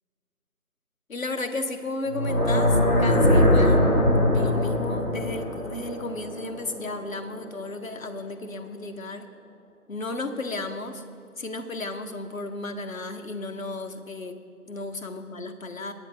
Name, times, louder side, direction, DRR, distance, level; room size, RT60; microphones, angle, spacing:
voice 1, 1.1-3.9 4.3-9.3 9.9-11.0 11.4-14.4 14.7-15.9, left 2 dB, 60° left, 7 dB, 1.1 m, -34 dB
sound 1, 2.1-7.2, left 1 dB, 85° left, 3.0 m, -22 dB
23.0 x 9.6 x 2.3 m, 2.3 s
figure-of-eight pair, 170°, 45 cm